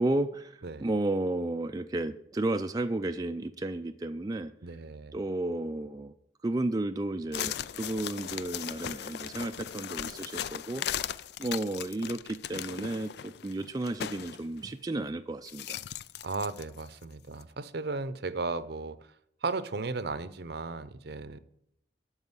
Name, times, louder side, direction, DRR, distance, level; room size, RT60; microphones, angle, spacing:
voice 1, 0.0-0.5 0.8-4.5 5.1-6.1 6.4-10.8 11.4-15.8, right 2 dB, 20° right, 7 dB, 0.4 m, -32 dB
voice 2, 4.6-5.2 16.2-19.0 19.4-21.4, right 3 dB, 60° right, 14 dB, 0.7 m, -35 dB
sound 1, 7.3-14.5 15.5-17.0 17.4-17.5, left 10 dB, 65° left, 0.4 m, -38 dB
12.5 x 4.9 x 8.1 m, 0.75 s
head